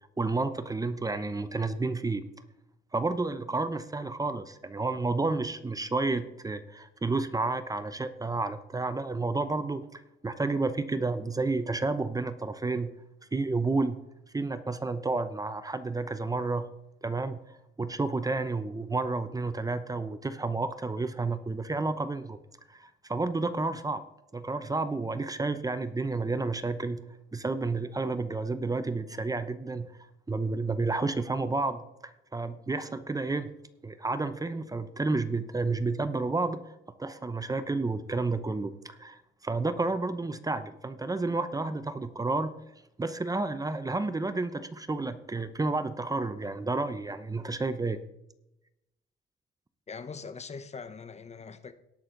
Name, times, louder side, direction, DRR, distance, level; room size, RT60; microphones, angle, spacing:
voice 1, 0.2-2.2 2.9-9.8 10.2-12.9 13.3-14.0 14.3-16.7 17.0-22.4 22.7-24.0 24.3-27.0 27.3-29.9 30.3-31.8 32.3-33.5 33.8-36.6 37.0-42.5 43.0-48.0, right 3 dB, 20° right, 0.8 m, -30 dB
voice 2, 49.9-51.7, left 5 dB, 35° left, 0.9 m, -42 dB
18.0 x 6.3 x 3.9 m
cardioid pair, 90°, 20 cm